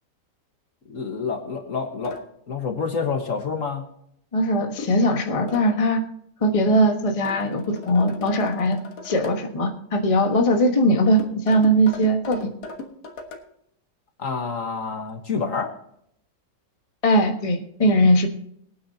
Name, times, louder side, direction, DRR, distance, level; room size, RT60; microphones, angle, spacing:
voice 1, 0.9-2.2 2.5-3.8 14.2-15.7, left 5 dB, 50° left, 4 dB, 1.7 m, -28 dB
sound 1, 2.0-2.3 4.8-5.1 5.5-5.7 7.3-9.4 11.2-13.4, left 3 dB, 65° left, 2.0 m, -38 dB
voice 2, 4.3-6.0 6.4-12.5 17.0-18.3, equal, 20° left, 3 dB, 1.2 m, -20 dB
21.5 x 9.5 x 2.8 m, 0.70 s
omnidirectional pair, 1.8 m